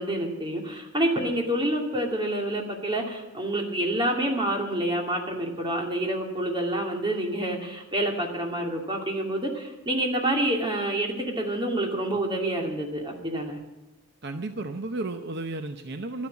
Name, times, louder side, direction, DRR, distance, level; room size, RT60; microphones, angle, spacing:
voice 1, 0.0-13.6, right 1 dB, 20° right, 1 dB, 2.4 m, -28 dB
voice 2, 14.2-16.3, right 2 dB, 50° right, 7 dB, 0.7 m, -33 dB
12.0 x 10.5 x 8.5 m, 1.0 s
head